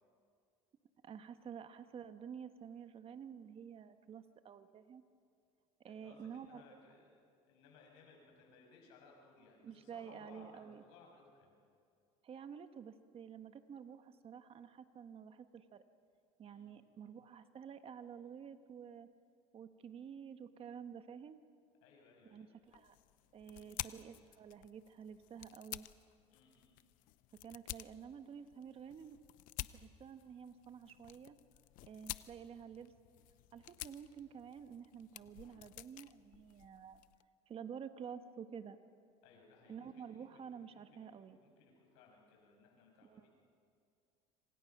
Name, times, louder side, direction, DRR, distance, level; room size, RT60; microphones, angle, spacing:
voice 1, 1.0-5.0 5.8-6.6 9.6-10.8 12.2-15.8 16.4-19.1 19.5-21.4 22.2-23.0 23.3-25.8 27.4-29.2 29.7-31.4 31.8-32.9 33.5-37.0 37.5-38.8 39.7-41.4 43.0-43.3, right 7 dB, 40° right, 9 dB, 1.4 m, -50 dB
voice 2, 5.8-7.1 7.5-11.5 16.4-16.7 21.8-22.5 23.4-23.9 26.3-26.8 39.2-41.1 41.4-43.3, left 4 dB, 85° left, 0 dB, 7.1 m, -62 dB
sound 1, 22.7-37.2, left 18 dB, 70° left, 0.7 m, -51 dB
27.0 x 25.5 x 6.1 m, 2.3 s
supercardioid pair, 105°, 15 cm